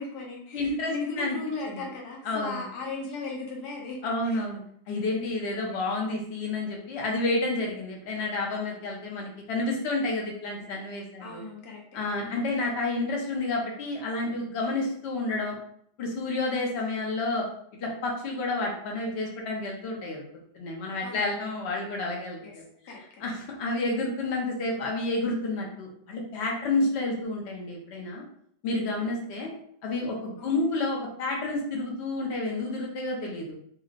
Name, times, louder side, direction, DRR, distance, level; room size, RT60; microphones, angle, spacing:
voice 1, 0.0-4.0 4.2-4.4 5.7-5.8 11.2-12.4 16.5-16.8 21.0-21.5 22.4-22.6 22.9-23.3 26.7-26.9 28.8-29.1 30.4-30.6, left 3 dB, 75° left, -1 dB, 1.3 m, -37 dB
voice 2, 0.5-1.4 1.7-1.8 2.2-2.6 4.0-4.6 4.9-11.4 11.9-15.6 16.0-17.4 17.8-20.2 20.5-22.9 23.2-28.2 28.6-29.5 29.8-33.5, left 2 dB, 55° left, -1 dB, 0.8 m, -30 dB
2.9 x 2.6 x 2.5 m, 0.66 s
omnidirectional pair, 1.7 m